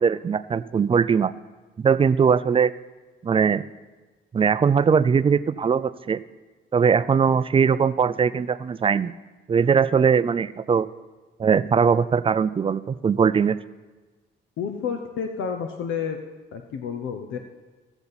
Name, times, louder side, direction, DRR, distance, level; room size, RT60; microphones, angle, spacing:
voice 1, 0.0-1.3 1.8-2.7 3.2-3.6 4.3-6.2 6.7-9.1 9.5-10.9 11.4-13.6, right 6 dB, 25° right, 15 dB, 0.4 m, -20 dB
voice 2, 14.6-16.2 16.5-17.4, left 6 dB, 80° left, 5 dB, 0.8 m, -30 dB
16.0 x 7.1 x 4.1 m, 1.3 s
cardioid pair, 90°, 20 cm